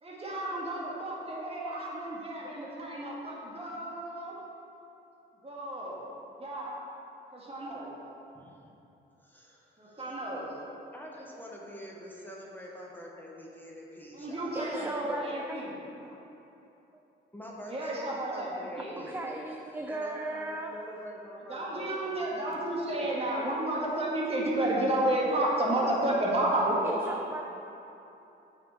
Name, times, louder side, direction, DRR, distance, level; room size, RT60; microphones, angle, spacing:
voice 1, 0.0-4.4 5.4-6.0 6.4-6.8 7.3-7.9 9.8-10.5 14.1-15.8 16.0-16.2 17.6-19.1 21.5-26.8, right 1 dB, 30° right, -4 dB, 1.7 m, -31 dB
voice 2, 9.2-10.1 10.9-14.7 17.3-19.3 19.9-22.7 23.0-23.1, equal, 10° left, -3 dB, 1.0 m, -45 dB
voice 3, 14.5-15.7 19.0-20.7 26.8-27.4, right 2 dB, 10° right, 1 dB, 0.4 m, -36 dB
8.4 x 5.1 x 4.5 m, 2.9 s
cardioid pair, 90°, 20 cm